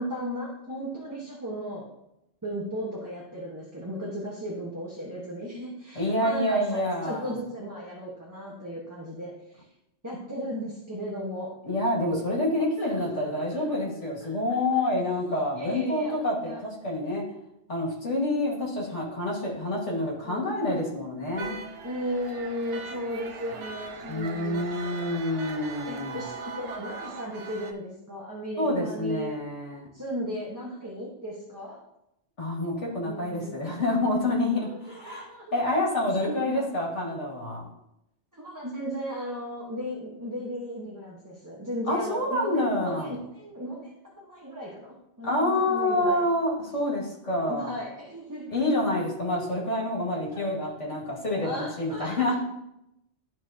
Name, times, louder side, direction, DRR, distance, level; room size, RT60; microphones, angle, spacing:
voice 1, 0.0-1.9 2.4-9.7 10.0-11.5 12.6-13.6 14.0-14.3 14.7-14.8 15.5-16.1 16.4-16.6 19.7-19.9 20.2-20.5 21.8-25.2 25.8-29.3 29.9-31.8 33.0-33.5 34.6-35.5 36.2-36.7 38.3-46.3 47.5-48.5 50.3-50.5 51.4-52.3, equal, 15° right, -5 dB, 1.2 m, -36 dB
voice 2, 5.9-7.3 11.6-17.2 17.7-21.6 24.1-26.2 28.6-29.9 32.4-37.6 41.9-43.1 45.2-47.7 48.5-52.4, left 1 dB, 75° left, -3 dB, 2.5 m, -27 dB
sound 1, 21.3-27.7, right 5 dB, 75° right, 1.1 m, -40 dB
13.0 x 4.6 x 2.9 m, 0.85 s
omnidirectional pair, 1.2 m